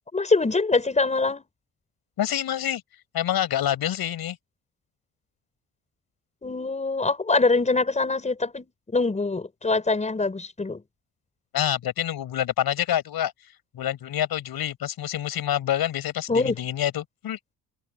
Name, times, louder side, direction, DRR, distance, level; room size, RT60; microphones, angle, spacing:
voice 1, 0.1-1.4 6.4-10.8 16.3-16.6, left 3 dB, 20° left, 5.8 m, -24 dB
voice 2, 2.2-2.8 3.1-4.4 11.5-13.3 13.7-17.4, left 11 dB, 75° left, 5.5 m, -27 dB
cardioid pair, 145°, 37 cm